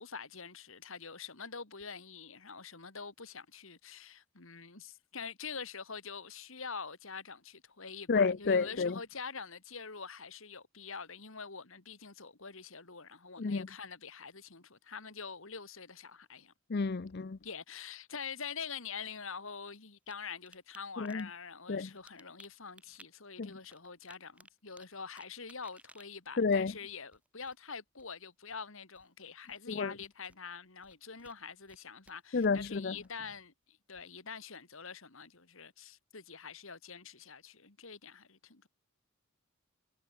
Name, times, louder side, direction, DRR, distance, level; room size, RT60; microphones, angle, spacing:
voice 1, 0.0-16.5 17.0-17.1 17.4-38.7, left 5 dB, 65° left, 2.2 m, -45 dB
voice 2, 8.1-9.0 13.4-13.7 16.7-17.4 21.0-21.3 21.7-21.9 23.4-23.5 26.4-26.7 29.7-29.9 32.3-33.0, left 4 dB, 45° left, 0.5 m, -30 dB
sound 1, 19.1-20.1 20.4-20.8 21.1-21.4 21.9-23.1 23.5-27.6 28.0-28.2 28.5-29.1 29.5-30.4 30.8-31.8 32.0-33.4, right 1 dB, 5° right, 7.6 m, -60 dB
head